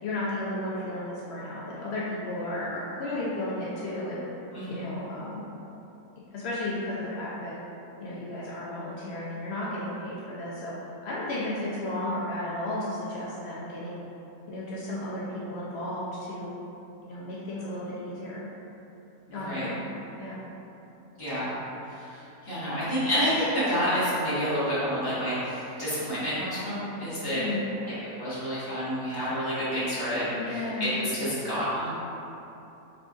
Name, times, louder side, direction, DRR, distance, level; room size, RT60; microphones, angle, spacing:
voice 1, 0.0-4.2 4.7-5.4 6.2-7.6 8.0-10.7 11.0-14.0 14.5-16.5 17.0-18.5 19.3-19.9 20.2-20.4 27.4-27.6 30.3-31.0, left 1 dB, 80° left, -7 dB, 0.5 m, -33 dB
voice 2, 19.3-19.7 21.2-21.5 21.8-27.4 27.8-31.9, equal, 15° left, -13 dB, 1.4 m, -29 dB
4.6 x 3.7 x 2.5 m, 3.0 s
omnidirectional pair, 1.9 m